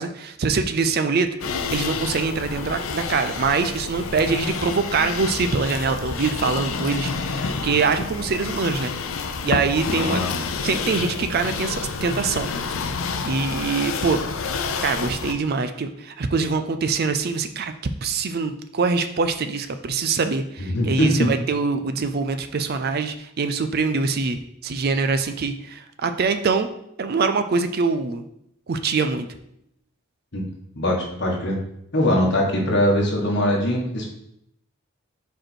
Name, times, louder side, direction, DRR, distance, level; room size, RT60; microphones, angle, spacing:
voice 1, 0.0-10.2 10.6-12.5 13.2-14.2 14.8-17.7 18.0-26.7 27.0-28.2 28.7-29.3, right 4 dB, 45° right, 9 dB, 0.4 m, -24 dB
sound 1, 1.4-15.3, left 5 dB, 70° left, 0.5 m, -29 dB
voice 2, 9.8-10.4 20.6-21.3 30.3-30.5 30.7-31.6 31.9-34.1, left 1 dB, 55° left, -1 dB, 1.4 m, -22 dB
5.0 x 4.6 x 4.4 m, 0.76 s
head